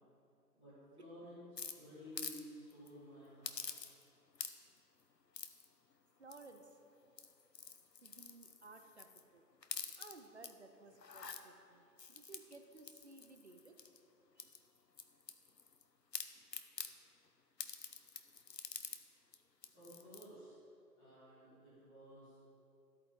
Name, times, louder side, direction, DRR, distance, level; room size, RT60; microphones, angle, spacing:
voice 1, 0.5-1.4 1.7-3.6 19.7-20.6 21.0-22.4, equal, 5° right, -20 dB, 2.2 m, -54 dB
sound 1, 1.6-2.4 2.7-2.9 3.4-4.1 4.3-4.8 5.3-5.7 6.3-6.7 7.1-9.2 9.6-10.5 10.9-11.4 12.0-14.0 14.4-15.8 16.1-16.9 17.6-19.0 19.3-19.4 19.6-20.3, left 5 dB, 85° left, 0.9 m, -47 dB
voice 2, 6.2-6.7 8.0-9.5 10.0-13.9 14.4-14.6, right 3 dB, 45° right, 6 dB, 0.8 m, -58 dB
13.5 x 8.6 x 3.8 m, 2.7 s
figure-of-eight pair, 160°, 49 cm